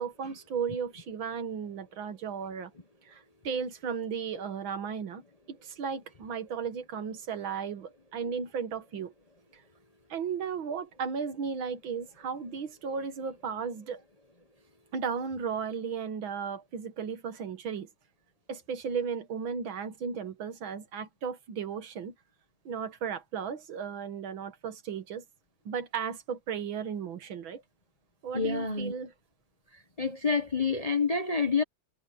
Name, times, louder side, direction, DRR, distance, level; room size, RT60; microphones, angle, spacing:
voice 1, 0.0-2.7 3.1-9.1 9.5-9.6 10.1-14.0 14.9-17.9 18.5-22.1 22.7-25.2 25.7-27.6 28.2-29.1, right 6 dB, 85° right, 2.3 m, -35 dB
voice 2, 28.3-28.9 30.0-31.6, left 4 dB, 25° left, 0.8 m, -27 dB
omnidirectional pair, 2.1 m